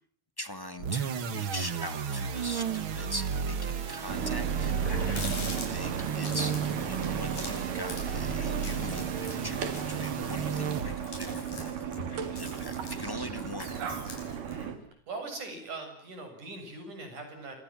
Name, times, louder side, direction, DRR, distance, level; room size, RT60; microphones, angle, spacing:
voice 1, 0.4-13.8, left 1 dB, 10° left, 10 dB, 1.4 m, -41 dB
sound 1, 0.8-11.2, right 7 dB, 50° right, 2.0 m, -33 dB
sound 2, 4.1-14.8, right 8 dB, 90° right, 4.1 m, -35 dB
Water tap faucet, 4.2-4.3 4.6-14.7, left 2 dB, 70° left, 8.7 m, -43 dB
voice 2, 15.1-17.6, right 3 dB, 70° right, 6 dB, 8.8 m, -41 dB
29.5 x 27.0 x 7.5 m, 0.62 s
omnidirectional pair, 3.7 m